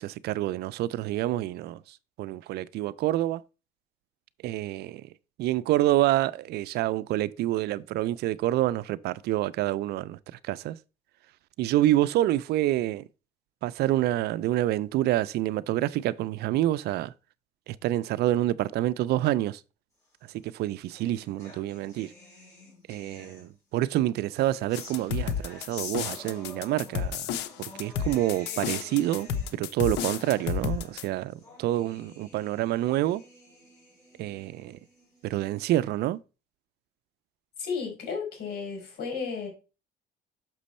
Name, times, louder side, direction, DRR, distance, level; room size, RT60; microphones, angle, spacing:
voice 1, 0.0-3.4 4.4-5.1 5.4-10.2 10.4-10.8 11.6-13.0 13.6-17.1 17.7-19.6 20.5-22.1 22.9-27.2 27.6-33.2 34.2-34.8 35.2-36.2, right 14 dB, 70° right, 0.4 m, -27 dB
sound 1, 20.4-23.8 24.3-35.7, left 1 dB, 20° left, 4.9 m, -50 dB
sound 2, 24.7-31.0, left 7 dB, 90° left, 0.8 m, -31 dB
voice 2, 37.6-39.5, left 5 dB, 70° left, 4.1 m, -33 dB
6.3 x 6.1 x 4.2 m
cardioid pair, 110°, 17 cm